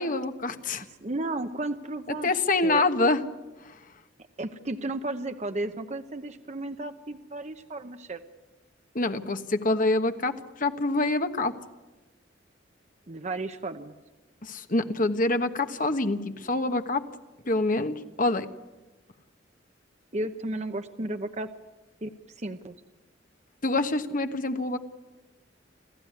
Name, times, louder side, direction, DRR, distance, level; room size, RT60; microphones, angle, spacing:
voice 1, 0.0-0.8 2.2-3.2 8.9-11.5 14.4-17.0 17.4-18.5 23.6-24.8, left 2 dB, 45° left, 8 dB, 1.4 m, -26 dB
voice 2, 1.0-2.8 4.4-8.2 13.1-13.9 20.1-21.5 22.0-22.1 22.4-22.7, right 2 dB, 40° right, 8 dB, 0.9 m, -33 dB
28.5 x 15.0 x 9.6 m, 1.1 s
head